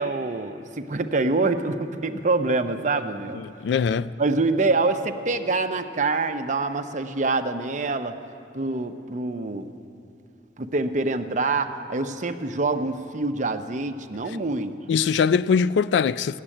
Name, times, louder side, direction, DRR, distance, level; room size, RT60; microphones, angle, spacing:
voice 1, 0.0-3.4 4.2-8.1 8.5-9.7 10.6-14.7, right 3 dB, 45° right, 0.7 m, -25 dB
voice 2, 3.3-4.1 14.9-16.4, left 6 dB, 85° left, 0.3 m, -22 dB
16.5 x 7.5 x 10.0 m
head